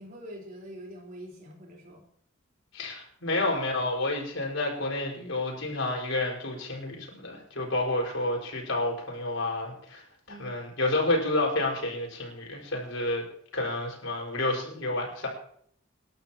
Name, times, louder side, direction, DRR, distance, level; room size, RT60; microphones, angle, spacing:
voice 1, 0.0-2.1 10.3-10.6, equal, 45° right, -1 dB, 4.2 m, -44 dB
voice 2, 2.7-13.2 13.5-15.3, left 2 dB, 80° left, -1 dB, 5.1 m, -30 dB
26.5 x 12.0 x 3.0 m, 0.64 s
head